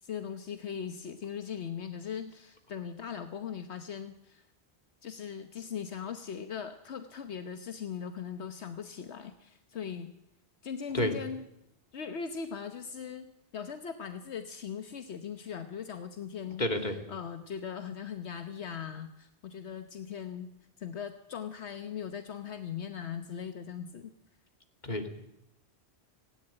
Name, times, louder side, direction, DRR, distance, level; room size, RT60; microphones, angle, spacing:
voice 1, 0.0-4.4 5.0-10.1 10.6-11.4 11.9-16.6 17.1-20.5 20.8-24.1, left 7 dB, 75° left, 8 dB, 1.2 m, -39 dB
voice 2, 16.6-17.0 24.8-25.2, left 1 dB, 40° left, 5 dB, 2.6 m, -30 dB
18.0 x 17.0 x 8.8 m, 0.83 s
omnidirectional pair, 1.1 m